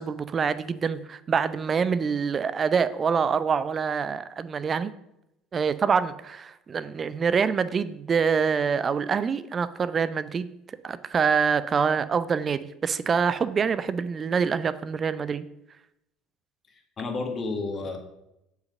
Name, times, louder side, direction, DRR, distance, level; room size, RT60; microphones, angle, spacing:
voice 1, 0.0-4.9 5.5-10.5 10.8-15.5, right 6 dB, 35° right, 15 dB, 0.6 m, -25 dB
voice 2, 16.7-18.0, left 3 dB, 40° left, 3 dB, 2.0 m, -31 dB
7.7 x 5.9 x 6.5 m, 0.84 s
hypercardioid pair, 65°, 0 cm